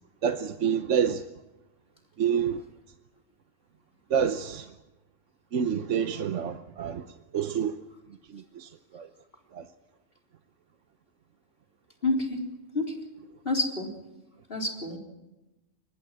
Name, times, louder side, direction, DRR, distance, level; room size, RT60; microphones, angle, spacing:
voice 1, 0.2-1.2 2.2-2.6 4.1-4.6 5.5-7.0 7.3-7.7 8.6-8.7 8.9-9.1 9.5-9.6, right 8 dB, 75° right, 1.2 m, -27 dB
voice 2, 12.0-12.4 12.7-12.9 13.5-13.9 14.5-15.0, left 2 dB, 50° left, 4.0 m, -28 dB
24.5 x 21.0 x 6.2 m
omnidirectional pair, 1.3 m